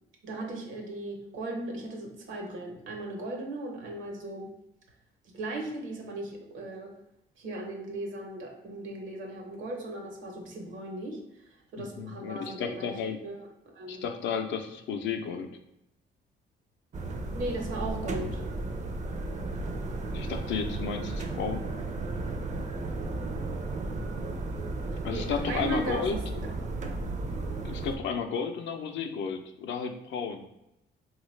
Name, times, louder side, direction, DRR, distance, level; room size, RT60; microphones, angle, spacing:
voice 1, 0.2-4.5 5.3-6.9 7.4-12.9 13.2-13.4 13.7-14.0 17.3-18.5 24.9-26.5, right 2 dB, 80° right, 1 dB, 0.9 m, -37 dB
voice 2, 11.8-13.2 13.9-15.5 20.1-21.7 25.0-26.2 27.6-30.4, left 6 dB, 70° left, 6 dB, 0.5 m, -33 dB
sound 1, 16.9-28.0, right 2 dB, 40° right, 0.5 m, -34 dB
3.5 x 2.3 x 3.1 m, 0.85 s
cardioid pair, 90°, 20 cm